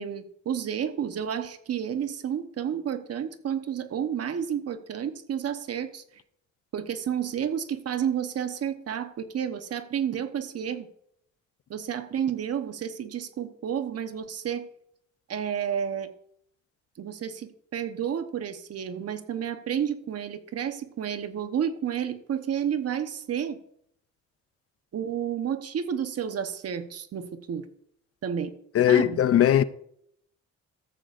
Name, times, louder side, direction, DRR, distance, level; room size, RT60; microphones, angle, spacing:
voice 1, 0.0-6.0 6.7-10.9 11.7-14.7 15.3-16.1 17.0-23.6 24.9-27.7 28.2-28.5 28.9-29.2, right 8 dB, 55° right, 1.0 m, -31 dB
voice 2, 28.7-29.6, left 11 dB, 50° left, 0.5 m, -19 dB
14.0 x 8.0 x 2.5 m
cardioid pair, 90°, 30 cm